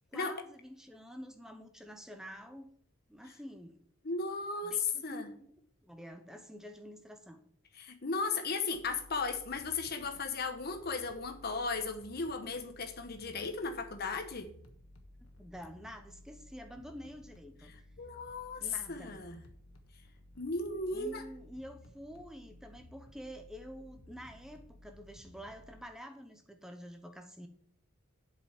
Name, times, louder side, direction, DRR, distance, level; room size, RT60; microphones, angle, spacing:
voice 1, 0.1-2.7 3.1-3.8 4.6-7.4 15.2-17.7 18.6-19.2 20.9-27.5, equal, 5° right, 0.8 m, -48 dB
voice 2, 4.0-5.3 7.7-14.5 17.7-19.4 20.4-21.2, left 4 dB, 45° left, 1.1 m, -36 dB
sound 1, 8.7-25.8, left 1 dB, 70° left, 1.4 m, -57 dB
7.6 x 5.5 x 7.1 m
head